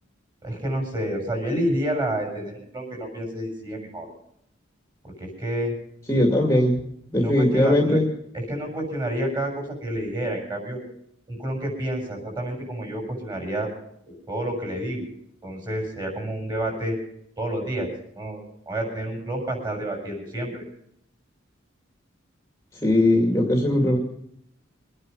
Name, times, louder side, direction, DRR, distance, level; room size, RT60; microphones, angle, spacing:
voice 1, 0.4-4.1 5.0-5.8 7.2-8.0 8.3-10.8 11.3-13.7 14.3-15.1 15.4-17.0 17.4-18.4 18.6-20.6, right 1 dB, 20° right, 1 dB, 6.9 m, -29 dB
voice 2, 6.1-6.8 7.1-8.1 22.8-24.0, left 1 dB, 15° left, 1 dB, 2.3 m, -19 dB
24.5 x 9.8 x 5.4 m, 0.71 s
head